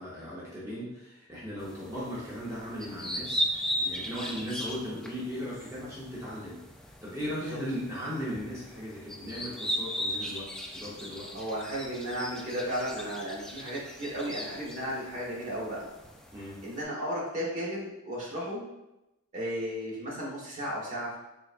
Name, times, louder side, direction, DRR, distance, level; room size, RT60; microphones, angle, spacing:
voice 1, 0.0-6.6 7.0-11.3 16.3-16.6, equal, 15° right, -8 dB, 0.7 m, -37 dB
sound 1, 1.6-16.8, equal, 5° left, 0.3 m, -38 dB
voice 2, 11.3-15.9 16.6-18.6 19.3-21.2, equal, 35° right, -5 dB, 1.2 m, -34 dB
3.9 x 3.2 x 2.4 m, 0.94 s
head